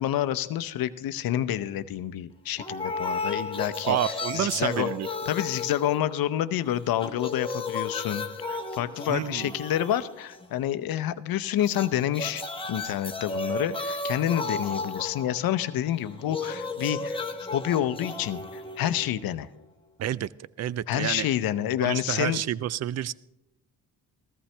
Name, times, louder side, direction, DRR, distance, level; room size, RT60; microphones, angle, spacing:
voice 1, 0.0-4.0 4.3-4.9 5.3-12.4 12.7-19.5 20.9-22.4, left 11 dB, 65° left, 13 dB, 0.7 m, -28 dB
sound 1, 2.6-6.6 6.9-10.6 11.6-19.6, left 3 dB, 15° left, 1.1 m, -34 dB
voice 2, 3.9-5.1 9.1-9.5 20.0-20.3 20.6-21.3 21.8-23.1, right 11 dB, 45° right, 20 dB, 0.4 m, -29 dB
14.5 x 14.0 x 3.3 m, 0.90 s
cardioid pair, 85°, 38 cm